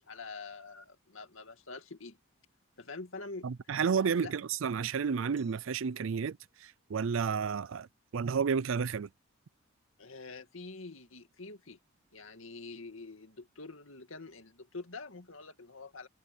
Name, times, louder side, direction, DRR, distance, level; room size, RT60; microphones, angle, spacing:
voice 1, 0.0-2.2 2.8-3.8 4.2-4.3 10.0-11.8 12.1-16.1, left 3 dB, 80° left, 2.2 m, -46 dB
voice 2, 3.4-7.9 8.1-9.1, right 6 dB, 75° right, 0.5 m, -31 dB
Glass, 5.4-8.1, right 10 dB, 55° right, 6.0 m, -70 dB
head